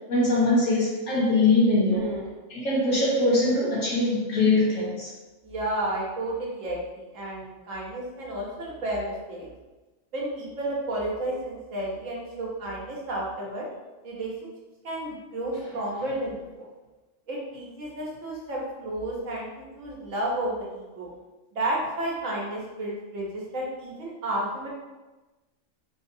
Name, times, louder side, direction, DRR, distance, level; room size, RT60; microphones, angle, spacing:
voice 1, 0.1-2.0 2.5-5.1, left 2 dB, 85° left, -7 dB, 1.6 m, -22 dB
voice 2, 1.9-2.4 5.4-9.5 10.1-13.7 14.0-14.5 14.8-16.7 17.3-21.1 21.5-24.7, right 1 dB, 80° right, -3 dB, 1.4 m, -32 dB
4.1 x 2.8 x 2.6 m, 1.2 s
omnidirectional pair, 1.3 m